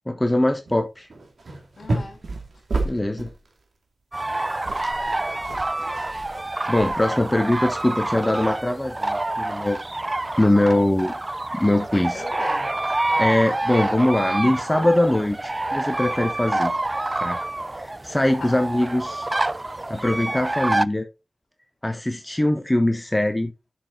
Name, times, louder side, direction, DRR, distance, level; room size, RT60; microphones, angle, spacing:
voice 1, 0.1-1.1 2.8-3.3 6.7-9.8 10.4-11.1 11.5-12.2 13.2-16.7 17.2-17.4 17.8-19.3 19.9-21.1 21.8-23.5, left 1 dB, 15° left, 1.4 m, -22 dB
sound 1, 0.7-0.8 1.1-3.5 4.2-4.3 4.5-7.3, right 2 dB, 70° right, 2.5 m, -31 dB
voice 2, 1.8-2.2 5.8-5.9 11.9-12.8 13.1-13.6 18.4-18.6, left 2 dB, 75° left, 3.5 m, -37 dB
sound 2, 4.1-20.9, right 2 dB, 25° right, 0.4 m, -27 dB
7.3 x 6.8 x 4.0 m
wide cardioid pair, 65°, 0 cm